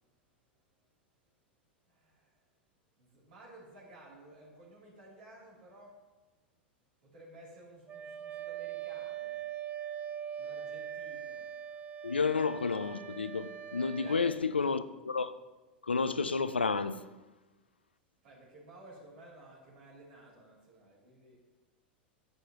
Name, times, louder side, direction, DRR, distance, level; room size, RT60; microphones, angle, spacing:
voice 1, 1.9-2.4 3.0-6.0 7.0-9.4 10.4-11.4 14.0-14.6 18.2-21.4, right 1 dB, 60° right, 3.1 m, -55 dB
Wind instrument woodwind instrument, 7.9-14.4, right 9 dB, 25° right, 0.5 m, -42 dB
voice 2, 12.0-15.3 15.8-17.1, left 4 dB, 85° left, 0.4 m, -31 dB
10.5 x 8.0 x 3.0 m
figure-of-eight pair, 90°, 6 cm